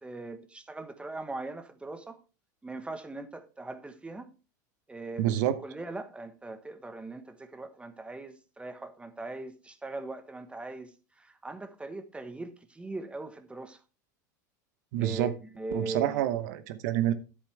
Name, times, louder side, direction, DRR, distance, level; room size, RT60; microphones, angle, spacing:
voice 1, 0.0-2.2 2.6-4.3 4.9-13.8 15.0-16.2, right 2 dB, 10° right, 1.1 m, -40 dB
voice 2, 5.2-5.6 14.9-15.3 15.7-17.1, right 12 dB, 65° right, 1.0 m, -27 dB
10.0 x 8.1 x 3.3 m
hypercardioid pair, 100°, 10 cm